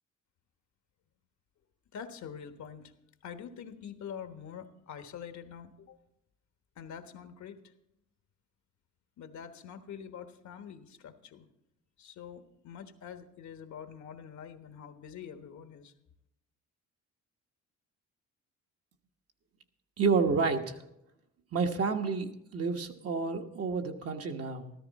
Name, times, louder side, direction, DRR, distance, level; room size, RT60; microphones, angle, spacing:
voice 1, 1.9-2.9 3.2-6.0 6.8-7.6 9.2-11.5 12.0-15.9, left 7 dB, 70° left, 8 dB, 1.3 m, -45 dB
voice 2, 20.0-20.8 21.5-24.7, right 5 dB, 50° right, 4 dB, 1.4 m, -30 dB
14.0 x 13.5 x 4.1 m, 0.83 s
cardioid pair, 90°, 30 cm